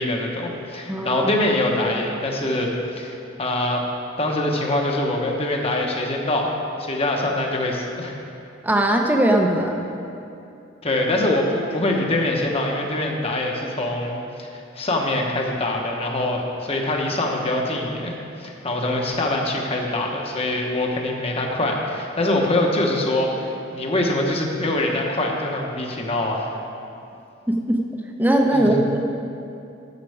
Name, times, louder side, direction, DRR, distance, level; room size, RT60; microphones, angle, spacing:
voice 1, 0.0-3.8 4.2-8.1 10.8-26.5 28.5-28.8, left 1 dB, 30° left, 0 dB, 1.0 m, -24 dB
voice 2, 0.9-1.3 8.6-9.8 27.5-27.8 28.2-29.0, right 1 dB, 10° right, 2 dB, 0.7 m, -19 dB
11.0 x 7.5 x 4.8 m, 2.7 s
head